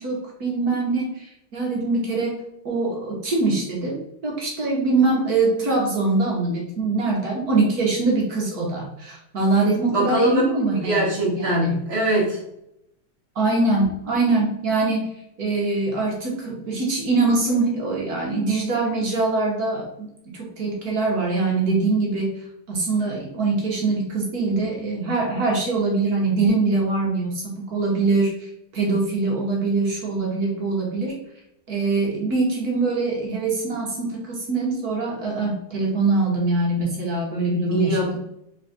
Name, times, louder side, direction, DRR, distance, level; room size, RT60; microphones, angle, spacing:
voice 1, 0.0-2.4 2.6-11.7 13.3-15.1 15.4-22.3 22.7-31.2 31.7-38.2, right 3 dB, 55° right, -2 dB, 1.5 m, -23 dB
voice 2, 9.9-10.4 10.7-12.4 37.7-38.2, right 1 dB, 35° right, -2 dB, 1.3 m, -22 dB
4.0 x 3.4 x 3.9 m, 0.79 s
omnidirectional pair, 2.1 m